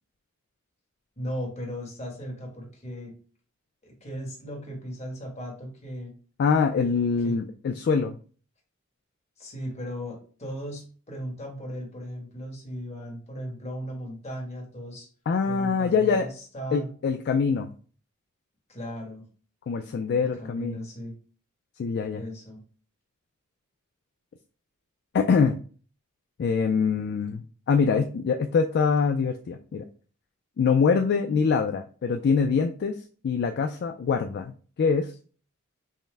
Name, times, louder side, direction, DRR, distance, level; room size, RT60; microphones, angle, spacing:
voice 1, 1.2-3.1 3.8-6.1 7.2-7.3 9.4-15.1 15.4-16.9 18.7-19.2 20.1-21.1 22.2-22.6, equal, 30° left, 0 dB, 1.3 m, -37 dB
voice 2, 6.4-8.2 15.3-16.3 16.7-17.7 19.7-20.8 21.8-22.2 25.1-25.6 26.4-29.9 30.6-33.0 33.2-34.5 34.8-35.1, left 5 dB, 50° left, 5 dB, 0.3 m, -24 dB
5.5 x 2.1 x 3.3 m, 0.41 s
head